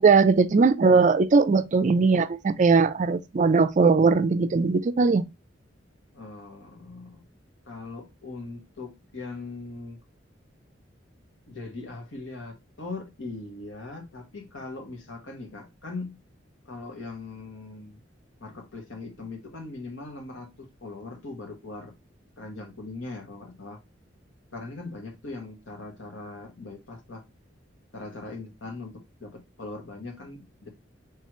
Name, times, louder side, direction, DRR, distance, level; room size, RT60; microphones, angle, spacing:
voice 1, 0.0-5.2, right 4 dB, 40° right, 0.4 m, -20 dB
voice 2, 6.1-7.2 7.7-10.0 11.5-16.2 16.7-18.0 18.4-21.9 22.4-23.8 24.5-27.2 27.9-30.7, left 3 dB, 80° left, 1.4 m, -40 dB
4.7 x 3.3 x 3.0 m
head